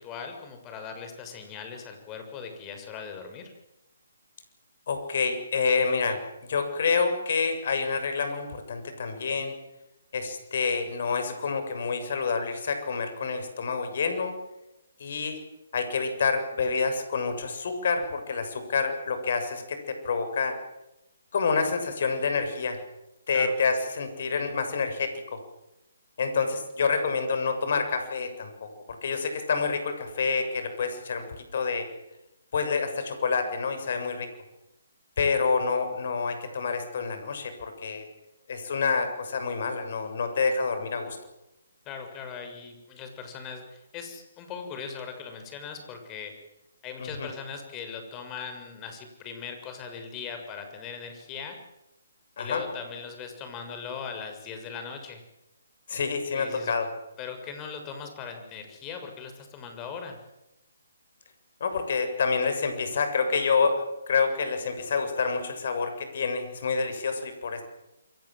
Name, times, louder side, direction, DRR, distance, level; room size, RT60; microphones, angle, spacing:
voice 1, 0.0-3.5 23.3-23.5 41.9-46.3 46.8-51.6 52.4-55.2 56.3-56.7 57.2-60.2, left 6 dB, 20° left, 6 dB, 6.8 m, -39 dB
voice 2, 4.9-6.2 6.5-9.6 10.1-14.3 15.0-15.4 15.7-20.6 21.3-22.8 23.3-25.4 26.2-31.2 31.5-31.9 32.5-34.3 35.2-38.0 38.5-41.2 47.0-47.3 52.4-52.6 55.9-56.9 61.6-67.6, left 5 dB, 55° left, 8 dB, 7.3 m, -28 dB
28.5 x 23.5 x 7.7 m, 0.95 s
figure-of-eight pair, 140°, 0 cm